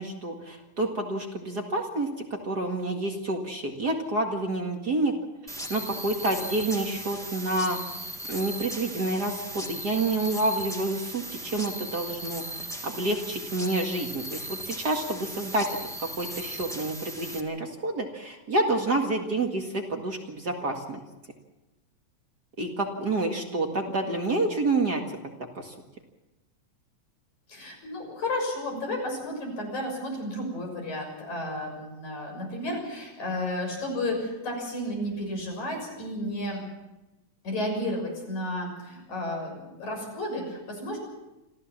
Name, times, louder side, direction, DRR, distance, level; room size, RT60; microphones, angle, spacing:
voice 1, 0.0-5.1 5.7-7.8 8.3-15.7 16.0-21.0 22.6-25.0 25.5-25.7, right 2 dB, 35° right, 2 dB, 2.3 m, -28 dB
sound 1, 5.5-17.4, equal, ahead, 1.6 m, -38 dB
voice 2, 27.5-36.7 37.4-41.0, left 1 dB, 80° left, 2 dB, 7.9 m, -32 dB
26.5 x 15.5 x 7.4 m, 1.0 s
omnidirectional pair, 3.3 m